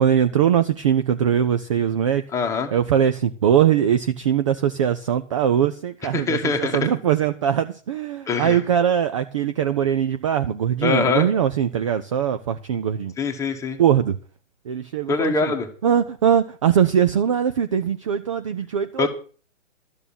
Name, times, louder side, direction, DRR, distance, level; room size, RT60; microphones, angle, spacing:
voice 1, 0.0-2.2 2.7-13.1 13.8-14.2 14.7-15.5 15.8-19.1, right 9 dB, 25° right, 0.5 m, -21 dB
voice 2, 2.3-2.7 6.1-6.9 8.3-8.6 10.8-11.3 13.2-13.8 15.1-15.7 19.0-19.1, left 4 dB, 10° left, 1.5 m, -23 dB
12.5 x 6.8 x 8.5 m
figure-of-eight pair, 130°, 39 cm